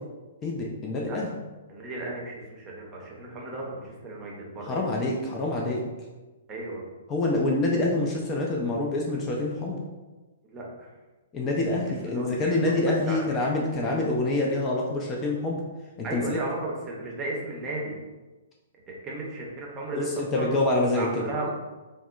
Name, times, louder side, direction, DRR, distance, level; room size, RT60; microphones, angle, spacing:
voice 1, 0.4-1.3 4.7-5.8 7.1-9.8 11.3-15.6 16.0-16.4 19.9-21.3, left 2 dB, 20° left, -2 dB, 0.4 m, -26 dB
voice 2, 1.7-4.8 6.5-6.8 10.4-10.9 12.0-13.2 16.0-17.9 18.9-20.1 20.4-20.5 20.9-21.5, right 2 dB, 20° right, -3 dB, 0.7 m, -35 dB
3.5 x 2.0 x 2.3 m, 1.2 s
figure-of-eight pair, 115°, 0 cm